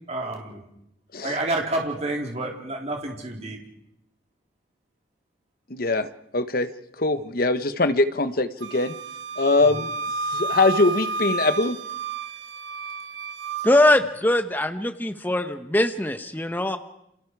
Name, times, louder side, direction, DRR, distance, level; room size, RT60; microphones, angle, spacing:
voice 1, 0.1-0.6 1.2-3.6 9.6-9.9, right 2 dB, 35° right, 0 dB, 3.8 m, -29 dB
voice 2, 5.7-6.1 6.3-6.7 7.0-8.9 9.4-9.9 10.3-11.8, left 2 dB, 50° left, 11 dB, 1.1 m, -22 dB
Wind instrument woodwind instrument, 8.6-13.8, right 3 dB, 70° right, 0.9 m, -31 dB
voice 3, 13.6-16.8, left 1 dB, 10° left, 8 dB, 1.0 m, -21 dB
29.5 x 27.0 x 4.8 m, 0.80 s
head